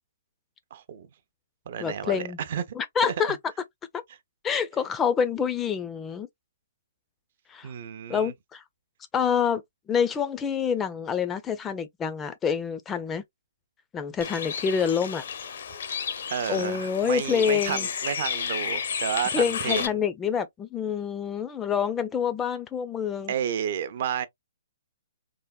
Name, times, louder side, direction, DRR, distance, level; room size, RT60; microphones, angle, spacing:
voice 1, 0.7-1.1 1.7-2.6 3.0-3.4 7.6-8.3 16.3-19.9 23.3-24.3, right 9 dB, 50° right, 0.5 m, -31 dB
voice 2, 1.8-2.4 2.8-3.4 4.4-6.3 7.5-7.7 8.1-8.6 9.1-9.6 9.9-13.2 13.9-15.2 16.5-17.9 19.3-23.3, left 7 dB, 15° left, 0.3 m, -27 dB
Bird, 14.2-19.9, left 7 dB, 65° left, 0.5 m, -32 dB
3.3 x 2.0 x 2.3 m
hypercardioid pair, 150°, 0 cm